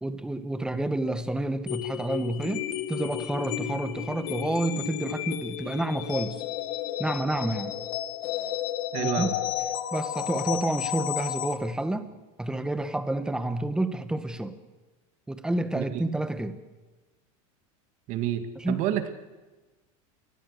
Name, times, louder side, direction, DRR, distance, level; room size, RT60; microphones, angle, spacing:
voice 1, 0.0-6.4 7.0-7.8 9.0-9.3 9.9-12.1 12.4-14.5 15.3-16.6 18.6-18.8, right 2 dB, 5° right, 11 dB, 1.3 m, -29 dB
sound 1, 1.7-11.6, left 12 dB, 55° left, 1.7 m, -32 dB
voice 2, 8.9-9.3 15.7-16.0 18.1-19.1, right 11 dB, 45° right, 9 dB, 2.3 m, -29 dB
27.5 x 21.5 x 6.7 m, 1.2 s
supercardioid pair, 150°, 17 cm